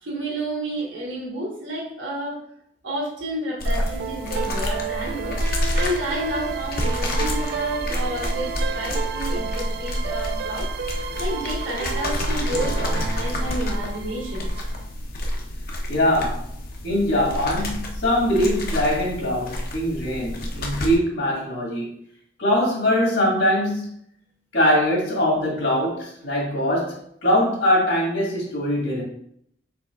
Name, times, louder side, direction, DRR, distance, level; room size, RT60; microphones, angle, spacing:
voice 1, 0.0-2.4 2.8-5.4 5.7-10.8 11.2-14.6, right 1 dB, 75° right, -2 dB, 1.6 m, -30 dB
sound 1, 3.6-21.0, left 1 dB, 50° left, 0.7 m, -28 dB
sound 2, 3.6-14.9, right 7 dB, 55° right, 0.4 m, -32 dB
voice 2, 15.9-16.5 16.8-21.9 22.4-23.9 24.5-27.0 27.2-29.0, equal, 65° left, -3 dB, 1.8 m, -22 dB
4.8 x 4.1 x 2.5 m, 0.70 s
head